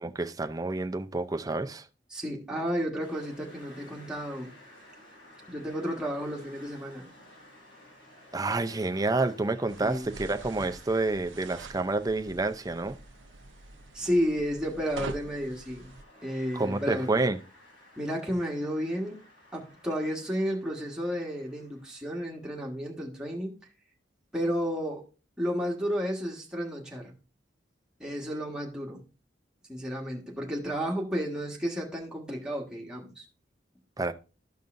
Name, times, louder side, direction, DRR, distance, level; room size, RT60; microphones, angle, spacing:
voice 1, 0.0-1.9 8.3-13.0 16.5-17.4 34.0-34.1, right 2 dB, 20° right, 0.5 m, -29 dB
voice 2, 2.1-4.6 5.5-7.1 9.8-10.1 13.9-15.9 16.2-17.1 18.0-19.2 19.5-23.6 24.3-25.0 25.4-27.1 28.0-29.0 29.7-33.2, equal, 5° right, 1.6 m, -32 dB
sound 1, 3.0-22.6, left 1 dB, 90° left, 4.5 m, -55 dB
sound 2, 9.7-16.0, right 3 dB, 90° right, 0.6 m, -45 dB
13.5 x 5.4 x 2.6 m
head